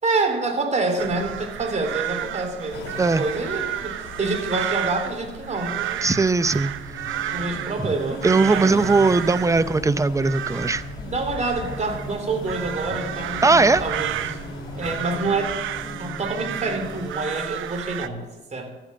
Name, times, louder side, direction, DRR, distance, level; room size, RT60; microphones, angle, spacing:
voice 1, 0.0-6.1 7.3-8.9 11.1-14.4 14.7-15.6 16.0-18.7, right 3 dB, 35° right, 4 dB, 3.3 m, -27 dB
sound 1, 1.0-18.1, right 11 dB, 80° right, 0.8 m, -32 dB
sound 2, 2.7-15.4, left 5 dB, 85° left, 2.4 m, -41 dB
voice 2, 6.0-6.7 7.0-7.3 8.2-10.8 13.4-13.8, right 3 dB, 15° right, 14 dB, 0.7 m, -19 dB
sound 3, 6.5-17.5, left 1 dB, 20° left, 3.2 m, -38 dB
13.5 x 8.9 x 7.7 m, 1.2 s
cardioid pair, 90°, 20 cm